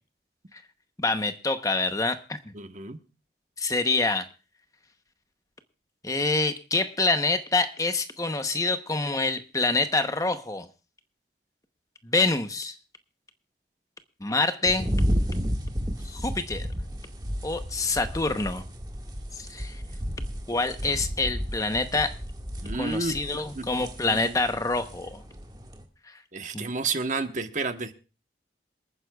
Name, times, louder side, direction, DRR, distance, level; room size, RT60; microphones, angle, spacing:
voice 1, 1.0-2.4 3.6-4.3 6.0-10.7 12.0-12.7 14.2-14.9 16.0-16.7 17.4-18.6 19.3-19.8 20.5-22.1 22.8-25.2 26.5-26.7, left 3 dB, 20° left, 9 dB, 0.8 m, -26 dB
voice 2, 2.5-3.0 22.6-23.7 24.0-24.3 26.3-27.9, right 3 dB, 45° right, 8 dB, 1.1 m, -31 dB
sound 1, 14.6-25.8, equal, 25° right, 1.8 m, -32 dB
27.0 x 9.6 x 2.3 m, 0.34 s
head